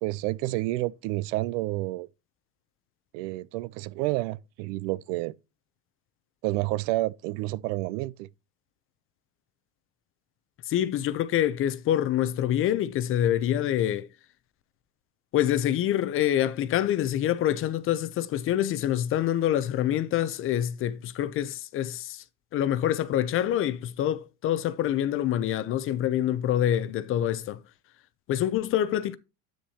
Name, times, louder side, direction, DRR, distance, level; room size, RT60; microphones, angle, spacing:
voice 1, 0.0-2.1 3.1-5.3 6.4-8.3, right 19 dB, 65° right, 0.6 m, -29 dB
voice 2, 10.7-14.1 15.3-22.2 22.5-27.6 28.3-29.2, left 11 dB, 30° left, 0.6 m, -26 dB
10.0 x 8.8 x 2.9 m
supercardioid pair, 150°, 41 cm